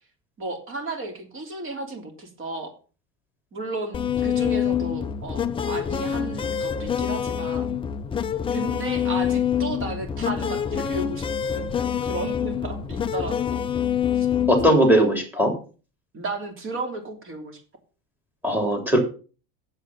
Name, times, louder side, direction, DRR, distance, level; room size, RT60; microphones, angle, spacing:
voice 1, 0.4-2.7 3.5-7.7 8.5-13.6 14.1-14.3 14.7-14.8 16.1-17.6, right 2 dB, 30° right, 5 dB, 3.1 m, -34 dB
sound 1, 3.9-14.7, left 8 dB, 15° left, 0.4 m, -26 dB
voice 2, 14.5-15.5 18.4-19.0, right 1 dB, 5° right, 4 dB, 3.3 m, -19 dB
7.9 x 7.8 x 7.1 m, 0.37 s
cardioid pair, 150°, 39 cm